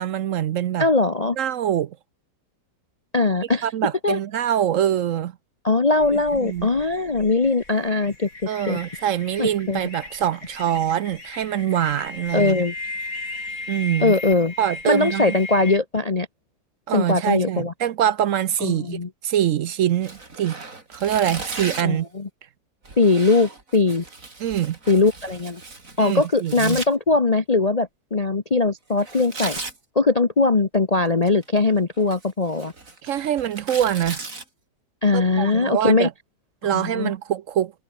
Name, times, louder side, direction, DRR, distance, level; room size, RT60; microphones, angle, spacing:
voice 1, 0.0-0.9 1.4-2.0 3.6-5.3 6.1-6.7 8.5-12.6 13.7-14.1 14.6-15.3 16.9-19.0 19.2-20.6 20.9-22.1 24.4-24.8 26.0-26.8 33.0-34.2 35.1-36.1 36.6-37.7, right 10 dB, 65° right, 0.8 m, -24 dB
voice 2, 0.8-1.4 3.1-3.7 4.0-4.2 5.6-8.3 8.7-8.8 9.4-9.8 12.3-12.7 14.0-14.5 14.8-16.3 16.9-17.7 18.6-19.1 21.8-22.3 23.0-24.0 24.9-25.6 26.0-29.6 29.9-32.7 35.0-36.1 36.7-37.1, left 3 dB, 30° left, 0.9 m, -20 dB
sound 1, 6.0-15.8, left 2 dB, 50° left, 5.1 m, -37 dB
Tearing, 20.0-22.0 22.8-26.9 29.0-29.8 31.1-31.6 32.0-34.4, right 3 dB, 45° right, 4.3 m, -36 dB
omnidirectional pair, 2.0 m